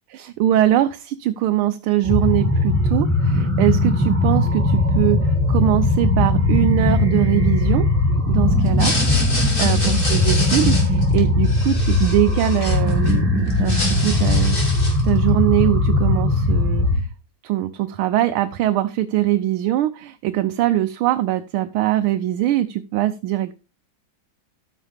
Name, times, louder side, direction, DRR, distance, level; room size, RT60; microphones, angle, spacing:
voice 1, 0.1-7.9 8.3-14.6 15.0-17.1 17.4-23.6, right 13 dB, 90° right, 8 dB, 1.5 m, -22 dB
sound 1, 2.0-17.0, left 2 dB, 5° right, 3.1 m, -19 dB
sound 2, 8.7-13.1 13.5-15.1, left 1 dB, 25° left, 2.5 m, -27 dB
13.5 x 6.4 x 3.4 m, 0.30 s
omnidirectional pair, 2.2 m